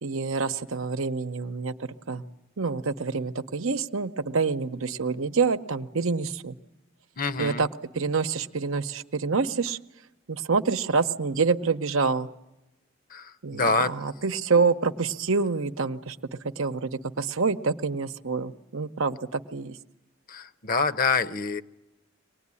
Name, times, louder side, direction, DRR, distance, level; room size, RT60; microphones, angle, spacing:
voice 1, 0.0-2.2 2.6-6.5 7.4-7.7 8.0-9.8 10.3-12.3 13.4-16.2 16.6-19.8, right 4 dB, 80° right, 9 dB, 0.9 m, -27 dB
voice 2, 7.2-7.7 13.1-13.9 20.3-21.6, left 4 dB, 40° left, 13 dB, 0.8 m, -26 dB
24.5 x 19.5 x 9.7 m, 0.94 s
head